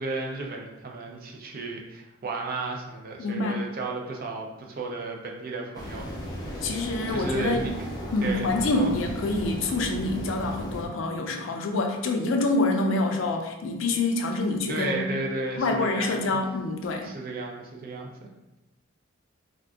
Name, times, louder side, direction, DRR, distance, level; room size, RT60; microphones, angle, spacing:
voice 1, 0.0-6.1 6.6-6.7 7.1-7.7 8.2-8.9 14.7-16.4 17.0-18.3, right 3 dB, 50° right, 0 dB, 0.5 m, -33 dB
voice 2, 3.2-3.7 6.6-7.6 8.1-15.1 15.6-17.1, left 2 dB, 75° left, 3 dB, 0.4 m, -26 dB
sound 1, 5.7-10.9, left 1 dB, 20° left, 0.6 m, -35 dB
2.5 x 2.3 x 3.5 m, 0.95 s
head